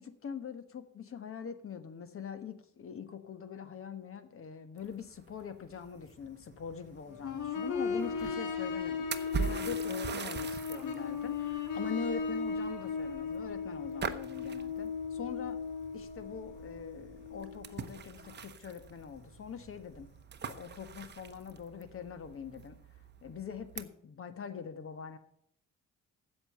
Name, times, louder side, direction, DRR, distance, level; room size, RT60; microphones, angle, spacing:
voice 1, 0.0-9.1 9.4-15.6 15.9-20.1 20.4-22.8 23.2-25.2, left 7 dB, 45° left, 10 dB, 1.3 m, -43 dB
sound 1, 4.8-23.8, right 6 dB, 35° right, 0.8 m, -44 dB
sound 2, 7.1-18.4 19.6-19.7, left 5 dB, 80° left, 1.5 m, -37 dB
7.9 x 7.7 x 7.7 m, 0.69 s
cardioid pair, 90°, 30 cm